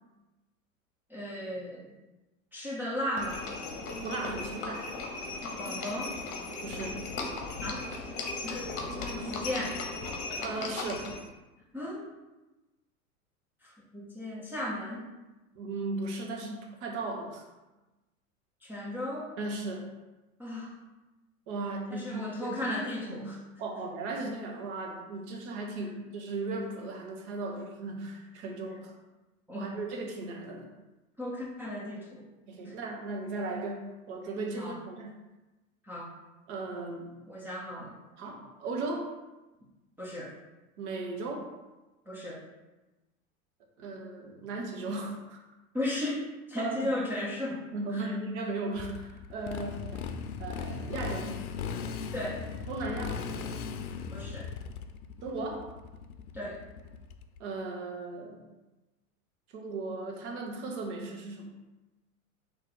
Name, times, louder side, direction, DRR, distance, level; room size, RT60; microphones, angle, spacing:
voice 1, 1.1-1.9 2.5-3.4 5.6-6.2 7.6-8.7 9.0-9.8 11.7-12.1 13.6-15.0 18.6-19.3 20.4-20.7 21.9-23.4 29.5-29.8 31.2-32.2 32.6-32.8 34.6-34.8 35.8-36.1 37.3-38.0 40.0-40.3 42.1-42.4 45.7-47.6 47.9-48.0 52.1-52.4 54.1-54.5 56.3-56.6, left 1 dB, 5° right, -6 dB, 0.3 m, -36 dB
Livestock farm animals working animals, 3.2-11.3, left 3 dB, 40° left, 0.8 m, -37 dB
voice 2, 4.0-4.9 6.6-7.0 10.4-11.1 15.5-17.4 19.4-19.9 21.5-23.3 23.6-28.9 29.5-30.7 32.5-35.1 36.5-37.1 38.2-39.1 40.8-41.5 43.8-45.4 46.6-46.9 47.7-50.0 50.4-51.3 52.7-53.2 55.2-55.6 57.4-58.4 59.5-61.5, right 3 dB, 55° right, 1 dB, 1.1 m, -36 dB
Motorcycle, 48.8-57.4, left 6 dB, 85° left, 0.5 m, -38 dB
4.0 x 2.8 x 4.0 m, 1.1 s
hypercardioid pair, 100°, 42 cm